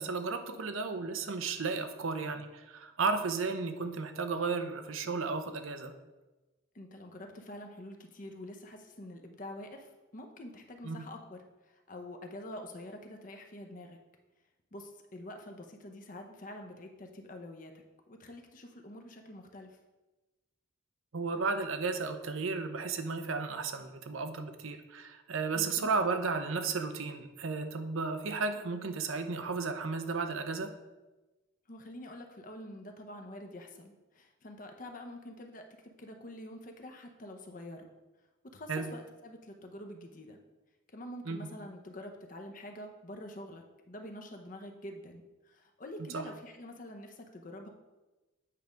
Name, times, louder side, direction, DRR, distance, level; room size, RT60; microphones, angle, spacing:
voice 1, 0.0-5.9 10.8-11.0 21.1-30.7 38.7-38.9 41.2-41.5 46.1-46.3, right 4 dB, 85° right, 7 dB, 0.7 m, -34 dB
voice 2, 6.7-14.0 14.7-17.7 18.1-19.8 25.5-25.9 31.7-35.6 36.0-37.9 38.5-40.4 40.9-47.7, left 1 dB, 40° left, 4 dB, 0.7 m, -46 dB
8.5 x 3.5 x 5.1 m, 1.1 s
head